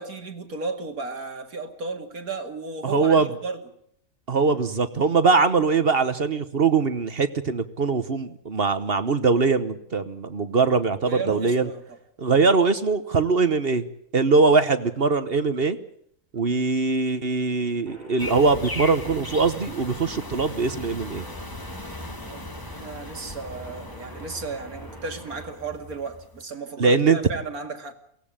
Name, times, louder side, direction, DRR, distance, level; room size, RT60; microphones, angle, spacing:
voice 1, 0.0-3.6 11.0-12.0 22.2-27.9, right 3 dB, 85° right, 2.7 m, -34 dB
voice 2, 2.8-3.3 4.3-11.7 12.2-13.9 14.1-15.8 16.3-21.3 26.8-27.2, right 4 dB, 45° right, 1.2 m, -22 dB
sound 1, 17.9-25.5, right 1 dB, 30° right, 4.5 m, -46 dB
sound 2, 18.2-26.4, left 2 dB, 15° left, 1.6 m, -38 dB
22.5 x 17.5 x 8.8 m
omnidirectional pair, 1.5 m